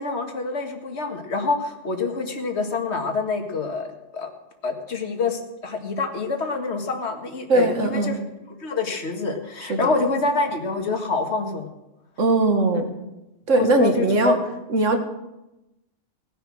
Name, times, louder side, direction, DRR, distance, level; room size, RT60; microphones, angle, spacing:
voice 1, 0.0-3.9 4.1-4.3 4.6-8.2 8.6-11.7 13.6-14.4, left 3 dB, 55° left, 3 dB, 2.1 m, -26 dB
voice 2, 7.5-8.2 9.7-9.9 12.2-12.9 13.5-14.4 14.7-15.0, right 2 dB, 65° right, 5 dB, 2.2 m, -20 dB
18.5 x 10.5 x 6.3 m, 0.96 s
omnidirectional pair, 1.4 m